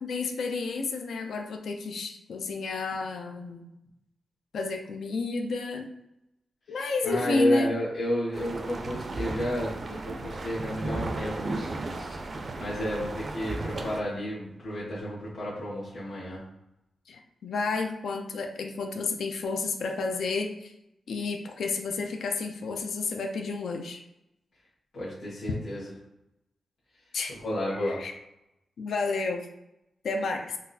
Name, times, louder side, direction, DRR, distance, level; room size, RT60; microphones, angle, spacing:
voice 1, 0.0-3.7 4.5-5.9 6.7-7.7 17.1-20.7 21.1-24.0 27.1-27.3 27.8-28.1 28.8-29.5 30.0-30.6, left 3 dB, 85° left, 3 dB, 0.4 m, -31 dB
voice 2, 7.0-12.2 12.6-16.4 24.9-25.9 27.3-28.0, equal, 60° left, -8 dB, 1.3 m, -32 dB
sound 1, 8.3-14.0, right 2 dB, 45° right, 0.4 m, -35 dB
3.8 x 2.4 x 2.7 m, 0.87 s
wide cardioid pair, 125°, 0 cm